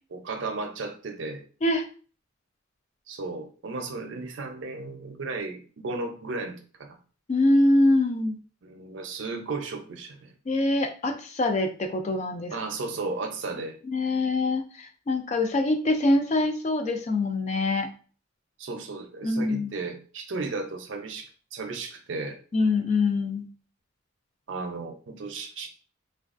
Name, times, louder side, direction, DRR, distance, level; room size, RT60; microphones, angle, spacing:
voice 1, 0.1-1.4 3.1-7.0 8.6-10.3 12.5-13.8 18.6-22.4 24.5-25.7, right 3 dB, 65° right, 5 dB, 0.5 m, -34 dB
voice 2, 7.3-8.4 10.5-12.6 13.9-17.9 19.2-19.7 22.5-23.5, left 2 dB, 35° left, 6 dB, 0.3 m, -24 dB
3.3 x 2.3 x 2.4 m, 0.39 s
head